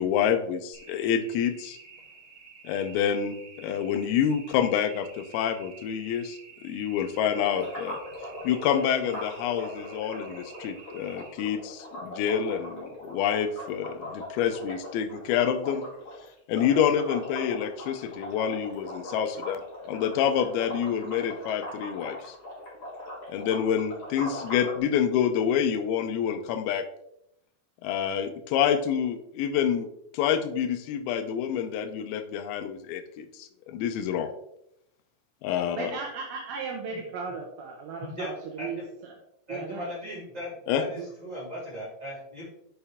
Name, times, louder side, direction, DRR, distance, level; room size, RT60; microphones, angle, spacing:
voice 1, 0.0-1.8 2.6-8.0 8.4-15.8 16.5-22.3 23.3-26.8 27.8-29.9 30.1-34.3 35.4-35.9 40.7-40.8, left 8 dB, 80° left, 8 dB, 2.3 m, -27 dB
sound 1, 0.7-11.3, right 5 dB, 60° right, 2.4 m, -50 dB
sound 2, 7.4-24.8, left 1 dB, 45° left, 1.2 m, -40 dB
voice 2, 35.7-39.2 39.5-39.9 41.0-41.1, right 5 dB, 75° right, 0 dB, 2.3 m, -36 dB
voice 3, 39.5-42.5, equal, 20° right, -7 dB, 1.2 m, -37 dB
6.7 x 5.6 x 3.5 m, 0.78 s
omnidirectional pair, 4.9 m